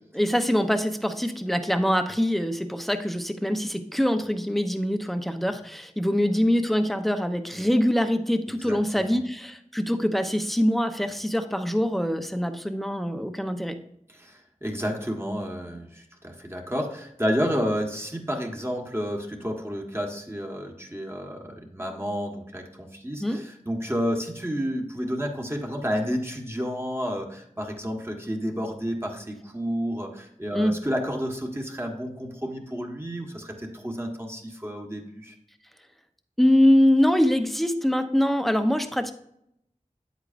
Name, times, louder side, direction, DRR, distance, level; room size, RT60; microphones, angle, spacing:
voice 1, 0.1-13.8 23.2-23.4 30.5-30.8 36.4-39.1, equal, ahead, 7 dB, 0.8 m, -24 dB
voice 2, 8.6-9.2 14.1-35.3, equal, 20° right, 1 dB, 1.5 m, -31 dB
9.6 x 8.1 x 2.6 m, 0.74 s
wide cardioid pair, 45°, 14 cm